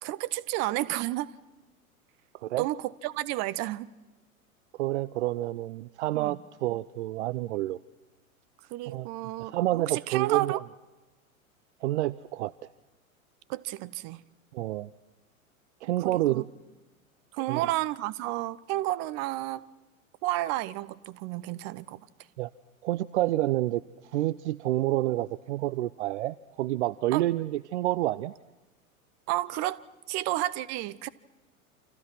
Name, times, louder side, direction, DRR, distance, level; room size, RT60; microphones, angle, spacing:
voice 1, 0.0-1.3 2.6-3.9 6.1-6.4 8.7-10.6 13.5-14.2 16.0-16.4 17.3-19.7 20.2-22.0 27.1-27.3 29.3-31.1, right 16 dB, 40° right, 1.1 m, -31 dB
voice 2, 4.8-7.8 8.9-9.1 9.4-10.6 11.8-12.5 14.5-14.9 15.8-16.4 17.5-17.7 22.4-22.5 22.8-28.3, right 15 dB, 55° right, 0.8 m, -28 dB
29.5 x 27.0 x 6.1 m
figure-of-eight pair, 95°, 42 cm